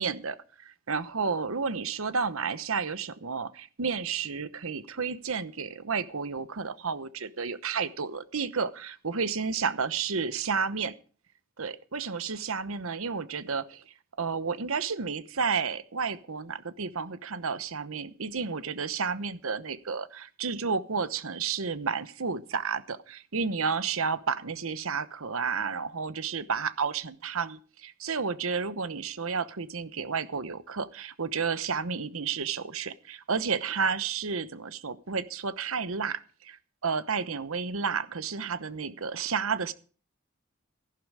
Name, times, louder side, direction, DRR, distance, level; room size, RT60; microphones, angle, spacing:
voice 1, 0.0-10.9 11.6-13.8 14.2-39.7, right 5 dB, 75° right, 14 dB, 0.9 m, -31 dB
14.0 x 12.0 x 4.8 m, 0.40 s
head